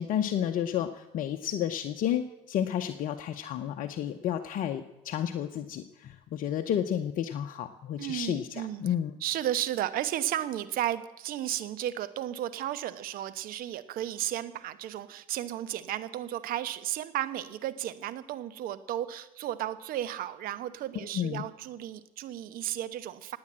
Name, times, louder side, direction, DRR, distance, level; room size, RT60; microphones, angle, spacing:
voice 1, 0.0-8.5 8.8-9.1 21.1-21.4, left 10 dB, 55° left, 5 dB, 0.9 m, -31 dB
voice 2, 8.0-8.8 9.2-23.4, right 12 dB, 60° right, 13 dB, 1.1 m, -34 dB
18.0 x 8.8 x 7.4 m, 0.98 s
hypercardioid pair, 75°, 17 cm